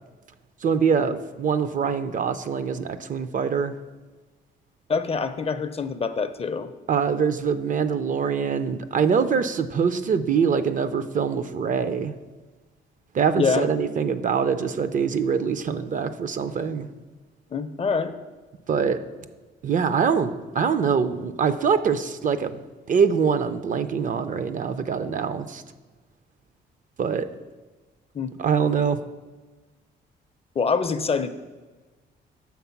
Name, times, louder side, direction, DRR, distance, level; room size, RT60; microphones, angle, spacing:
voice 1, 0.6-3.7 6.9-12.1 13.1-16.9 18.7-19.0 19.6-22.6 22.9-25.6 27.0-27.3 28.4-29.0, right 6 dB, 40° right, 11 dB, 0.4 m, -24 dB
voice 2, 4.9-6.7 13.4-13.7 17.5-18.1 28.1-28.3 30.6-31.3, left 5 dB, 30° left, 10 dB, 0.4 m, -25 dB
7.2 x 3.6 x 5.8 m, 1.3 s
cardioid pair, 90°, 20 cm